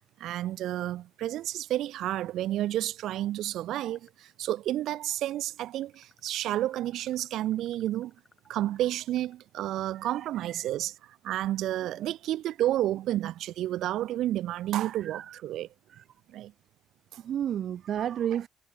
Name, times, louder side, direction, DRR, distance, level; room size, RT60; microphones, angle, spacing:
voice 1, 0.2-8.1 8.5-15.7 16.3-16.5 17.1-17.2, right 13 dB, 80° right, 0.8 m, -31 dB
sound 1, 3.9-4.6 4.9-9.4, left 3 dB, 25° left, 5.8 m, -64 dB
voice 2, 9.9-10.7 11.8-12.1 14.8-15.4 15.9-16.0 17.2-18.5, right 10 dB, 65° right, 0.3 m, -33 dB
cardioid pair, 90°, 0 cm